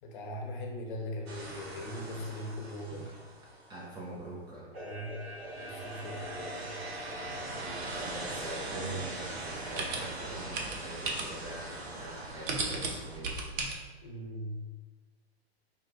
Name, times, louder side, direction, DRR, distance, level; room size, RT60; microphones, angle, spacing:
voice 1, 0.0-3.1 4.7-5.1 5.5-6.8 14.0-14.6, left 1 dB, 50° left, 1 dB, 0.9 m, -40 dB
sound 1, 1.3-3.9 4.7-13.2, right 2 dB, 75° right, 1.0 m, -41 dB
voice 2, 3.7-4.8 7.9-13.5, right 2 dB, 15° right, -4 dB, 0.5 m, -43 dB
sound 2, 7.9-13.7, right 3 dB, 55° right, 0.8 m, -38 dB
4.6 x 2.2 x 3.7 m, 1.3 s
hypercardioid pair, 125°, 32 cm